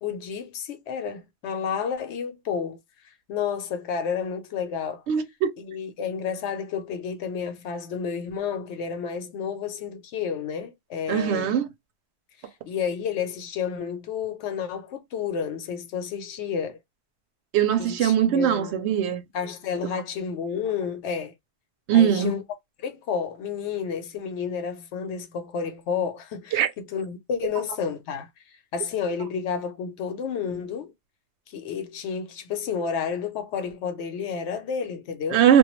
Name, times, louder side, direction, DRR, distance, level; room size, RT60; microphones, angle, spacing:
voice 1, 0.0-2.8 3.3-5.0 5.6-11.6 12.7-16.8 17.8-18.8 19.3-21.3 21.9-22.4 22.8-26.6 26.9-28.3 28.7-30.9 31.5-35.4, left 6 dB, 85° left, 0.9 m, -30 dB
voice 2, 5.1-5.6 11.1-11.7 17.5-19.2 21.9-22.4 26.5-26.7 35.3-35.6, right 9 dB, 80° right, 0.8 m, -20 dB
2.2 x 2.2 x 2.9 m
omnidirectional pair, 1.1 m